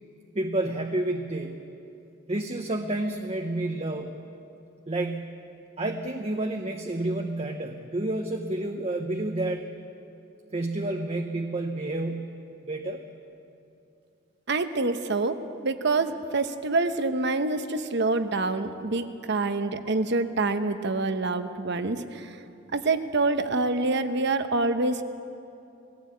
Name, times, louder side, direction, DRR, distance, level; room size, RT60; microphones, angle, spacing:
voice 1, 0.3-1.6 2.3-4.1 4.9-5.3 5.8-9.8 10.5-12.4 12.6-13.0, right 2 dB, 30° right, 4 dB, 0.9 m, -30 dB
voice 2, 14.5-22.4 22.7-25.0, right 3 dB, 60° right, 9 dB, 1.0 m, -26 dB
19.5 x 15.5 x 8.6 m, 2.7 s
head